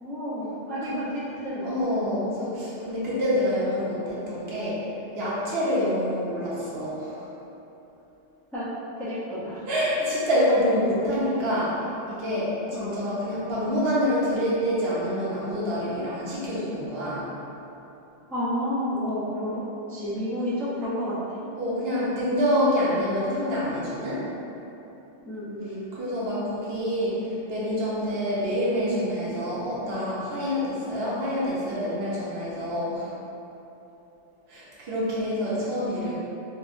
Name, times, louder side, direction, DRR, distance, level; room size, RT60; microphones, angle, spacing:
voice 1, 0.0-1.7 8.5-8.7 9.0-9.6 12.7-13.0 18.3-19.6 19.9-21.2 25.2-25.9, equal, 5° left, -11 dB, 0.4 m, -30 dB
voice 2, 1.6-4.8 5.2-7.3 9.7-17.3 21.6-24.2 25.9-33.2 34.5-36.2, equal, 65° right, -8 dB, 0.9 m, -27 dB
4.1 x 2.1 x 2.5 m, 2.9 s
omnidirectional pair, 1.2 m